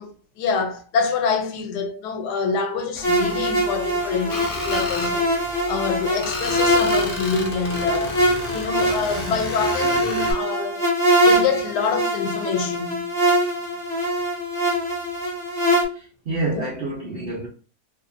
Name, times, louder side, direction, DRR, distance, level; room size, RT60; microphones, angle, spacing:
voice 1, 0.0-5.3 5.7-8.2 8.5-10.8 11.2-13.1 16.5-16.7, left 5 dB, 85° left, 1.1 m, -26 dB
sound 1, 3.0-9.5, left 1 dB, 25° left, 1.0 m, -39 dB
sound 2, 3.0-15.8, right 1 dB, 5° left, 0.4 m, -23 dB
Screech, 4.3-5.1 6.2-10.3, left 2 dB, 60° left, 0.5 m, -32 dB
voice 2, 15.9-17.5, right 2 dB, 75° right, 0.5 m, -28 dB
2.6 x 2.6 x 2.4 m
omnidirectional pair, 1.7 m